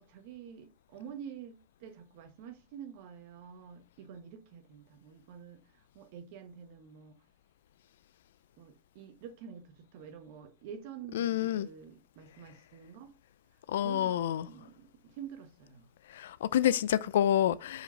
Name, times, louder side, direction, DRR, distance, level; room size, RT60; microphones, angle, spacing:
voice 1, 0.0-7.2 8.6-13.1 13.8-15.9, right 8 dB, 65° right, 1.4 m, -48 dB
voice 2, 11.2-11.7 13.7-14.5 16.1-17.8, left 11 dB, 80° left, 0.4 m, -28 dB
5.1 x 5.0 x 5.7 m
hypercardioid pair, 115°, 0 cm